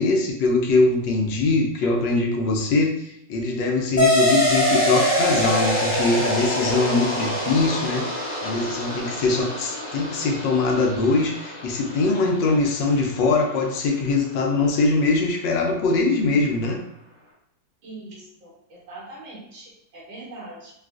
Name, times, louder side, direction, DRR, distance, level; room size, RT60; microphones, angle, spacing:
voice 1, 0.0-16.8, left 3 dB, 75° left, 1 dB, 1.3 m, -22 dB
sound 1, 4.0-13.0, equal, 25° left, 1.3 m, -25 dB
voice 2, 17.8-20.7, right 2 dB, 85° right, -7 dB, 1.8 m, -41 dB
3.8 x 2.4 x 2.4 m, 0.77 s
omnidirectional pair, 2.1 m